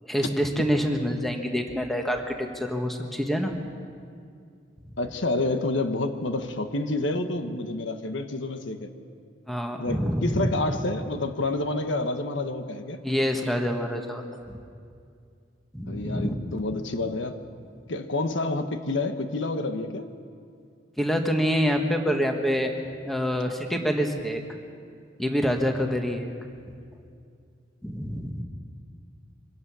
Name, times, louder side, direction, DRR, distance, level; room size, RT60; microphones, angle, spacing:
voice 1, 0.0-3.5 9.5-10.5 13.0-14.6 15.7-16.3 21.0-22.7 23.0-24.4 25.2-26.3 27.8-28.4, equal, ahead, 3 dB, 1.4 m, -26 dB
voice 2, 5.0-8.9 9.8-13.0 15.9-17.4 17.9-20.1, left 2 dB, 80° left, 7 dB, 1.2 m, -28 dB
24.0 x 17.0 x 6.2 m, 2.3 s
head